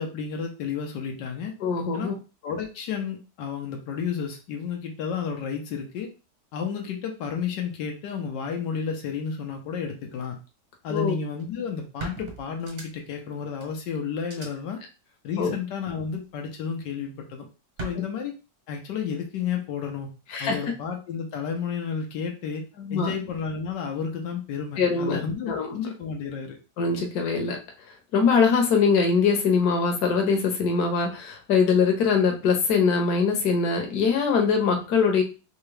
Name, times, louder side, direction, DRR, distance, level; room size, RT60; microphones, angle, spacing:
voice 1, 0.0-1.5 1.9-2.1 2.4-6.1 6.5-10.4 10.8-14.8 15.2-17.4 17.8-18.3 18.7-20.1 20.4-22.7 22.9-26.6, left 6 dB, 90° left, 2 dB, 1.4 m, -31 dB
voice 2, 1.6-2.1 10.9-11.2 15.4-15.5 20.3-20.6 22.8-23.1 24.8-25.2 25.5-25.8 26.8-27.6 28.1-35.2, left 5 dB, 65° left, 3 dB, 1.3 m, -22 dB
sound 1, 11.4-11.5 12.0-13.2 13.6-13.7 14.2-14.5 15.8-16.3 17.8-17.9, right 4 dB, 50° right, 1.3 m, -38 dB
3.6 x 2.8 x 3.2 m, 0.31 s
omnidirectional pair, 1.8 m